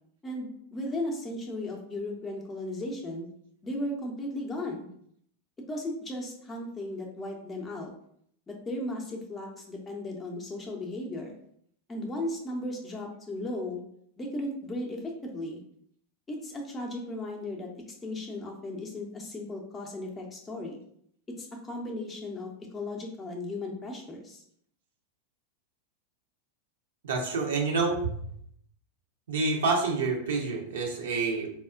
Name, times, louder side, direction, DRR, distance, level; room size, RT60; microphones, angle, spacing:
voice 1, 0.2-3.3 3.6-4.9 5.7-7.9 8.5-11.4 11.9-13.8 14.2-15.6 16.3-17.7 18.0-20.8 21.4-24.4, left 1 dB, 15° left, 0 dB, 0.6 m, -36 dB
voice 2, 27.0-28.1 29.3-31.6, right 3 dB, 60° right, 1 dB, 0.6 m, -28 dB
4.2 x 2.0 x 2.4 m, 0.67 s
figure-of-eight pair, 90°, 0 cm